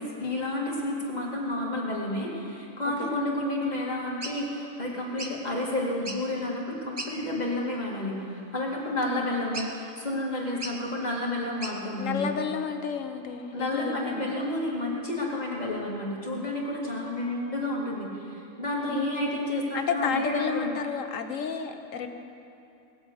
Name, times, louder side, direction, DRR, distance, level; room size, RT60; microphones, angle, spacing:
voice 1, 0.0-12.3 13.5-20.7, left 1 dB, 30° left, -3 dB, 2.3 m, -30 dB
sound 1, 4.2-4.4 5.2-5.4 5.9-6.3 7.0-7.1 7.7-7.9 9.5-9.9 10.6-10.8 11.6-11.8, right 2 dB, 20° right, 0.8 m, -38 dB
voice 2, 12.0-14.4 18.8-19.2 19.7-22.1, left 6 dB, 65° left, 7 dB, 1.3 m, -31 dB
19.0 x 7.9 x 7.9 m, 2.7 s
omnidirectional pair, 1.5 m